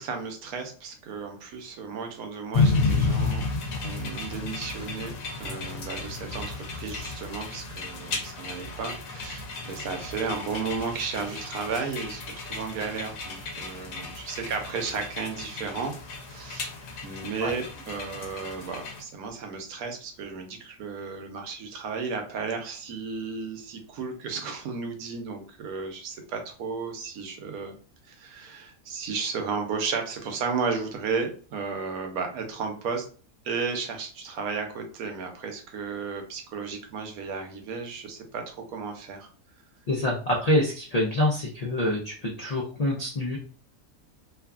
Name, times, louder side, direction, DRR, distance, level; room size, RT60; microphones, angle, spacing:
voice 1, 0.0-3.4 3.8-5.1 5.4-15.9 16.3-16.7 17.0-27.8 28.0-33.1 33.4-39.3, right 5 dB, 80° right, 4 dB, 1.1 m, -34 dB
sound 1, 2.5-19.0, left 3 dB, 70° left, 1.1 m, -32 dB
voice 2, 39.9-43.4, left 1 dB, 85° left, -3 dB, 0.3 m, -26 dB
2.8 x 2.4 x 2.3 m, 0.40 s
omnidirectional pair, 1.5 m